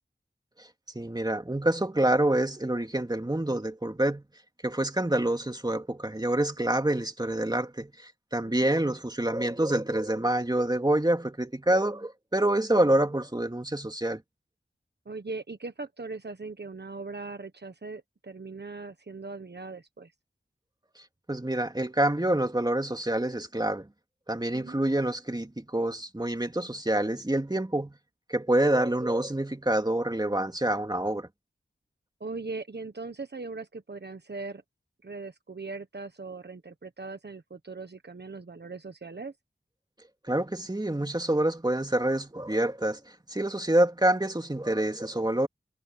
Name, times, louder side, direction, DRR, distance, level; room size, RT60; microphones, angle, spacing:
voice 1, 0.9-4.2 4.6-14.2 21.3-23.9 24.3-28.0 28.3-31.3 40.3-43.0 43.3-45.5, right 1 dB, 20° right, 2.4 m, -27 dB
voice 2, 15.0-20.1 24.5-24.8 32.2-34.6 35.0-39.3, right 3 dB, 55° right, 1.3 m, -40 dB
wide cardioid pair, 60°, 20 cm